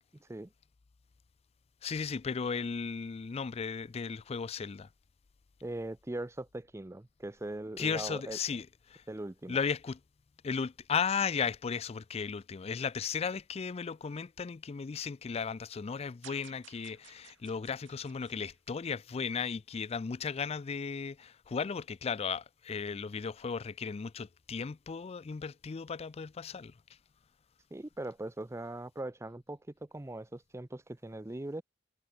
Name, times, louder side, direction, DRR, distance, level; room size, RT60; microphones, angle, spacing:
voice 1, 1.8-4.9 7.8-9.0 9.5-10.0 10.4-26.7, left 6 dB, 30° left, 0.4 m, -35 dB
voice 2, 5.6-8.4 9.1-9.6 27.7-31.6, right 1 dB, 15° right, 0.6 m, -40 dB
sound 1, 16.2-19.5, right 10 dB, 75° right, 2.4 m, -56 dB
head